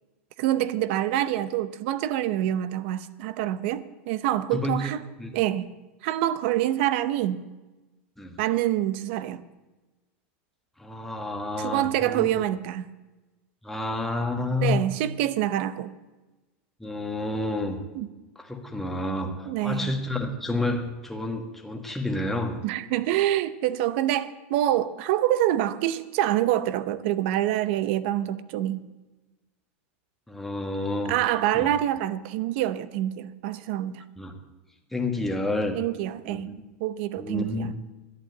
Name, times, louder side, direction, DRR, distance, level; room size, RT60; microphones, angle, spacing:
voice 1, 0.4-5.0 5.3-5.7 6.0-7.5 8.4-9.4 11.6-12.9 14.6-15.9 17.9-18.1 19.5-19.9 22.6-28.8 31.1-34.0 35.7-36.5 36.8-37.7, right 13 dB, 60° right, 15 dB, 0.7 m, -26 dB
voice 2, 4.5-4.9 5.2-5.4 8.2-8.3 10.8-12.3 13.6-14.8 16.8-17.8 18.3-22.6 30.3-31.7 34.2-34.3 34.9-35.8 36.3-36.5 37.2-37.8, left 2 dB, 5° left, 2 dB, 1.5 m, -29 dB
11.5 x 8.7 x 8.1 m, 1.1 s
supercardioid pair, 145°, 7 cm